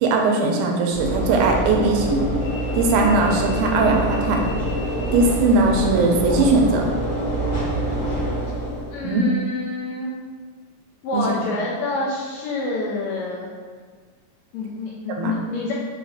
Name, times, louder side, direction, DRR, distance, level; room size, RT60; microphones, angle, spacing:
voice 1, 0.0-2.2 2.7-4.4 5.1-6.9 9.0-9.2 11.1-11.3 15.2-15.3, right 3 dB, 85° right, 1 dB, 2.0 m, -19 dB
Train / Engine / Alarm, 0.9-9.1, equal, 45° left, 1.2 m, -25 dB
voice 2, 8.9-10.1 11.0-13.5 14.5-15.7, left 2 dB, 80° left, -4 dB, 1.6 m, -27 dB
5.1 x 2.4 x 3.4 m, 1.5 s
omnidirectional pair, 3.5 m